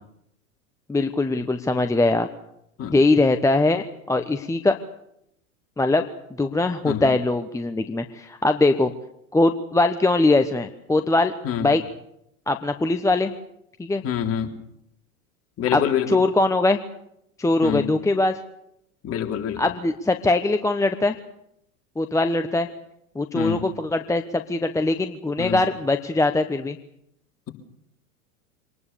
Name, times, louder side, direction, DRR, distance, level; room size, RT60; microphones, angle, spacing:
voice 1, 0.9-2.3 2.9-4.8 5.8-6.0 6.4-8.9 9.3-11.3 11.6-11.8 12.5-13.3 13.8-14.0 15.7-16.8 17.4-18.4 19.6-21.2 22.0-22.7 23.1-26.8, left 2 dB, 5° left, 7 dB, 1.1 m, -21 dB
voice 2, 14.0-14.5 15.6-16.2 17.6-17.9 19.0-19.7 23.3-23.7 25.4-25.6, left 9 dB, 35° left, 3 dB, 3.6 m, -26 dB
25.5 x 19.5 x 7.0 m, 0.78 s
hypercardioid pair, 95°, 43 cm